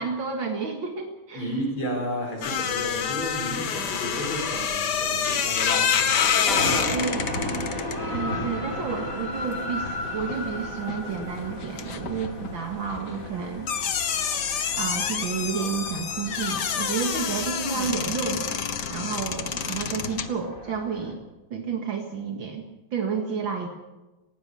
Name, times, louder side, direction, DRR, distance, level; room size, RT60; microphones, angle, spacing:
voice 1, 0.0-1.6 6.9-7.4 8.1-13.7 14.7-18.5 18.9-21.2 21.5-22.7 22.9-23.7, right 6 dB, 70° right, 4 dB, 2.5 m, -30 dB
voice 2, 1.3-6.2 6.5-7.0, equal, 85° left, -4 dB, 6.2 m, -32 dB
sound 1, 2.4-10.5 10.8-20.3, left 7 dB, 60° left, 1.8 m, -28 dB
sound 2, 6.4-21.1, left 1 dB, 40° left, 4.5 m, -35 dB
19.0 x 16.0 x 9.7 m, 1.1 s
omnidirectional pair, 2.2 m